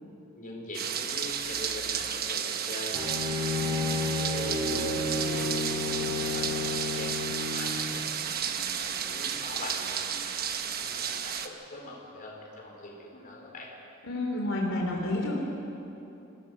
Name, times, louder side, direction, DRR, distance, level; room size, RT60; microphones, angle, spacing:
voice 1, 0.3-3.2 3.6-8.0 8.4-13.7, left 2 dB, 45° left, -1 dB, 4.7 m, -43 dB
sound 1, 0.7-11.5, right 8 dB, 50° right, 1.1 m, -32 dB
Bowed string instrument, 2.9-7.7, left 3 dB, 20° right, 3.1 m, -31 dB
voice 2, 14.0-15.4, left 1 dB, 80° left, -1 dB, 3.1 m, -29 dB
27.0 x 17.5 x 6.4 m, 3.0 s
head